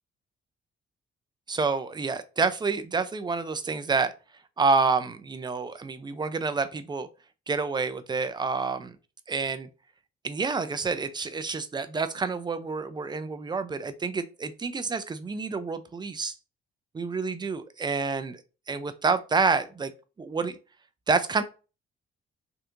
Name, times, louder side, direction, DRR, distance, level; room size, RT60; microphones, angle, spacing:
voice 1, 1.5-4.1 4.6-7.1 7.5-9.0 9.3-9.7 10.2-16.3 16.9-18.4 18.7-19.9 20.2-20.6 21.1-21.4, right 4 dB, 20° right, 0.4 m, -28 dB
3.5 x 2.7 x 2.5 m
cardioid pair, 90°, 20 cm